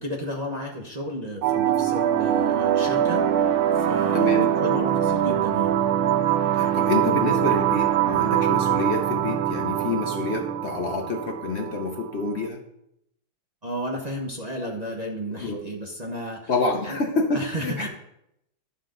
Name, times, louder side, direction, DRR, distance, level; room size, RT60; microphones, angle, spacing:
voice 1, 0.0-3.2 3.8-5.7 13.6-16.5 16.8-17.0 17.3-17.9, equal, 35° right, -1 dB, 0.7 m, -32 dB
sound 1, 1.4-12.4, right 10 dB, 85° right, 1.5 m, -23 dB
voice 2, 4.1-4.5 6.5-12.6 15.3-15.6 16.5-17.9, left 3 dB, 60° left, 3 dB, 0.7 m, -28 dB
11.5 x 6.7 x 3.8 m, 0.79 s
omnidirectional pair, 2.2 m